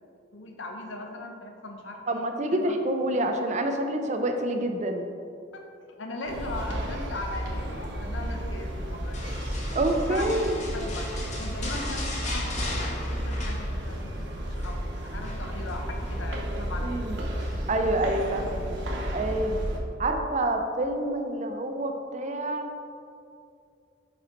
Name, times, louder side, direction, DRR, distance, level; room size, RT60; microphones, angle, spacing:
voice 1, 0.3-2.0 2.5-2.7 5.5-5.6 6.0-9.4 10.1-10.3 10.6-11.1 11.4-12.5 12.7-17.0 17.8-17.9, left 2 dB, 75° left, 2 dB, 0.8 m, -39 dB
voice 2, 2.1-5.1 9.7-10.6 16.8-17.2 17.7-18.6 19.1-19.6 20.0-22.7, right 1 dB, 35° right, 5 dB, 0.5 m, -27 dB
sound 1, 6.3-19.8, equal, 65° right, 0.9 m, -32 dB
sound 2, 9.1-14.1 14.4-14.8 15.2-16.2 17.4-17.8 18.3-18.5, left 2 dB, 35° left, 1.0 m, -38 dB
5.4 x 5.0 x 4.5 m, 2.5 s
head